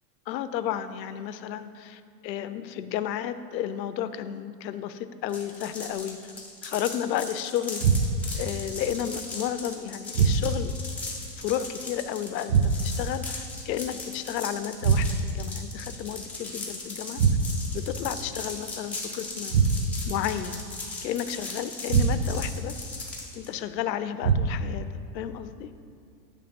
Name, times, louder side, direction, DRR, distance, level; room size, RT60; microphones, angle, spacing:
voice 1, 0.3-6.3 6.6-7.8 8.3-10.7 11.4-17.2 17.7-19.6 20.1-20.7 21.0-22.9 23.3-24.9 25.1-25.7, left 10 dB, 85° left, 12 dB, 0.6 m, -32 dB
sound 1, 5.3-23.5, left 3 dB, 5° left, 0.5 m, -38 dB
sound 2, 7.8-8.4 10.1-10.8 12.5-13.1 14.8-15.5 17.2-17.8 19.5-20.1 21.9-22.5 24.2-24.8, right 5 dB, 85° right, 0.8 m, -24 dB
8.7 x 3.3 x 5.1 m, 2.4 s
supercardioid pair, 135°, 50 cm